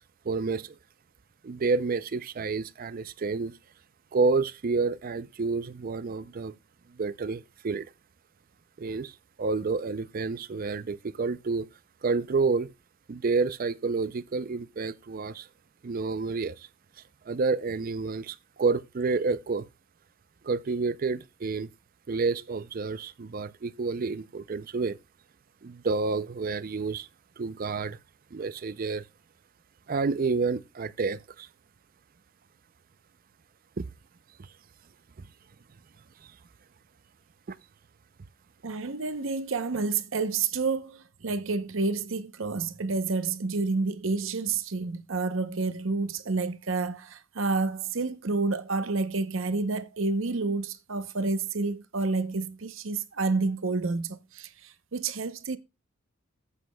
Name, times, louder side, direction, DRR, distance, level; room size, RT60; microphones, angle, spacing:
voice 1, 0.3-0.7 1.4-3.5 4.1-6.5 7.0-7.9 8.8-9.1 9.4-11.7 12.0-12.7 13.1-15.5 15.8-16.7 17.3-19.7 20.4-21.7 22.1-25.0 25.6-27.1 27.4-28.0 28.3-29.0 29.9-31.5 33.8-33.9 37.5-37.6, right 4 dB, 45° right, 0.5 m, -29 dB
voice 2, 38.6-55.6, right 3 dB, 70° right, 0.8 m, -29 dB
15.0 x 7.3 x 2.2 m
head